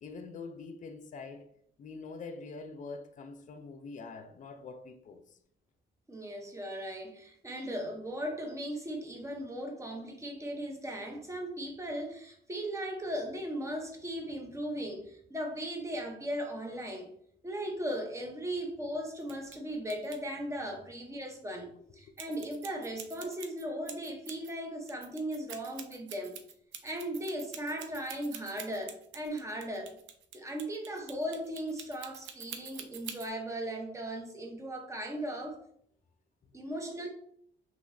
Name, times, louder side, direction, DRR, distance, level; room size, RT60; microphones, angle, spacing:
voice 1, 0.0-1.5 1.8-5.4 36.4-36.6, left 4 dB, 40° left, 0.4 m, -45 dB
voice 2, 6.1-17.1 17.4-21.7 21.9-26.3 26.8-29.9 30.3-35.6 36.5-37.1, equal, 15° right, 0.7 m, -37 dB
sound 1, 19.2-19.6 19.9-20.2 22.2-24.5 24.9-33.3, right 8 dB, 75° right, 0.4 m, -46 dB
2.9 x 2.8 x 2.6 m
cardioid pair, 90°, 20 cm